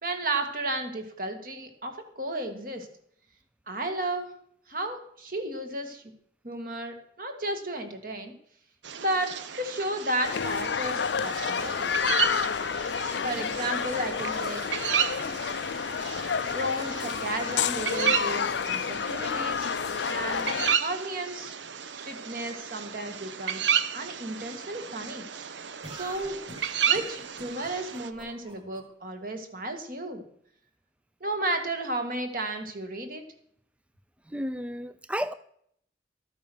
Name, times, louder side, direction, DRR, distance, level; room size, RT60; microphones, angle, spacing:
voice 1, 0.0-2.9 3.7-4.3 4.7-6.0 6.4-8.3 9.0-12.0 13.2-14.6 15.2-15.4 16.5-19.7 20.0-21.6 21.9-25.2 25.9-26.4 26.9-30.2 31.2-33.2, right 1 dB, 50° right, 6 dB, 2.1 m, -33 dB
sound 1, 8.8-28.1, right 8 dB, 80° right, 0.8 m, -33 dB
sound 2, 10.2-20.8, left 6 dB, 75° left, 0.5 m, -29 dB
sound 3, 25.8-28.8, right 1 dB, 30° right, 4.3 m, -45 dB
voice 2, 34.3-35.3, equal, 5° right, 12 dB, 0.4 m, -32 dB
14.0 x 8.9 x 6.4 m, 0.67 s
head